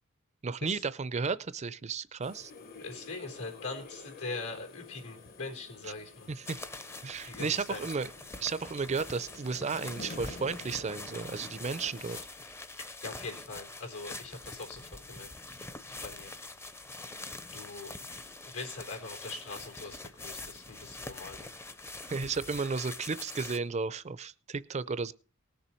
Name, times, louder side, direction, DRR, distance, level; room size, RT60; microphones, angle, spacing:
voice 1, 0.4-2.5 6.3-6.6 7.0-8.1 8.4-12.2 22.1-25.1, right 4 dB, 30° right, 16 dB, 0.5 m, -33 dB
sound 1, 2.2-12.2, left 3 dB, 40° left, 0.9 m, -49 dB
voice 2, 2.8-6.3 7.2-7.9 12.8-15.3 16.0-16.3 17.5-17.9 18.5-21.5, left 3 dB, 90° left, 1 dB, 3.8 m, -42 dB
sound 2, 6.5-23.6, left 2 dB, 10° left, 0.6 m, -44 dB
19.0 x 6.9 x 4.5 m, 0.37 s
head